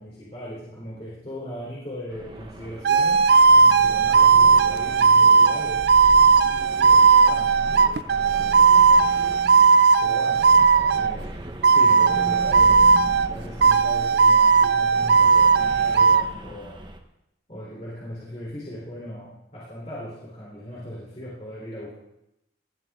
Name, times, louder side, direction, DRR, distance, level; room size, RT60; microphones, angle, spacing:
voice 1, 0.0-3.3 3.8-7.9 8.4-9.1 10.0-10.5 10.9-13.0 13.3-16.8 17.5-22.0, equal, 35° left, -7 dB, 3.7 m, -38 dB
sound 1, 2.1-17.0, right 1 dB, 25° right, 1.1 m, -38 dB
sound 2, 2.8-11.1 11.6-13.3 13.6-16.2, right 5 dB, 55° right, 0.4 m, -17 dB
19.5 x 12.0 x 3.8 m, 0.87 s
head